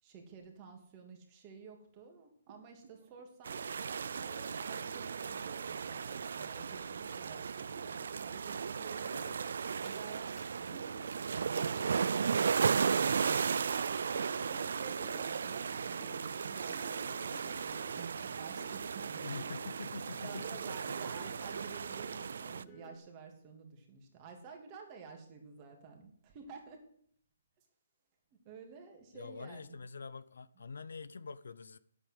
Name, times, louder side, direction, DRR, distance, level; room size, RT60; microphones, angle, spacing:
voice 1, 0.0-3.6 4.2-10.9 14.4-19.4 20.2-26.9 28.3-29.8, right 5 dB, 25° right, 2.7 m, -52 dB
sound 1, 2.5-7.1 7.4-9.3, right 6 dB, 40° right, 1.8 m, -59 dB
sound 2, 3.5-22.6, right 6 dB, 70° right, 0.4 m, -35 dB
voice 2, 9.1-9.5 19.2-21.1 29.1-31.8, left 4 dB, 80° left, 0.7 m, -46 dB
sound 3, 9.8-10.0 10.4-10.5 10.7-23.0, right 1 dB, 5° left, 3.1 m, -56 dB
9.0 x 8.3 x 8.1 m
hypercardioid pair, 155°, 0 cm